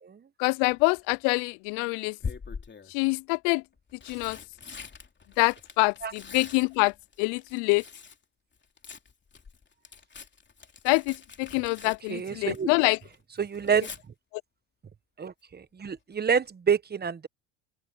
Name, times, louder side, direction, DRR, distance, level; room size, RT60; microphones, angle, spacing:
voice 1, 0.4-2.2 2.9-3.6 4.1-4.4 5.4-6.9 7.2-7.8 10.8-13.0, left 31 dB, 75° left, 0.5 m, -25 dB
Tearing, 0.7-1.2 2.2-2.9 3.7-8.2 8.5-12.8 13.1-14.0 15.9-16.1 16.4-16.5, left 5 dB, 25° left, 3.3 m, -43 dB
voice 2, 11.8-12.7 13.4-13.9 15.2-17.3, right 7 dB, 25° right, 1.2 m, -28 dB
open air
supercardioid pair, 100°, 41 cm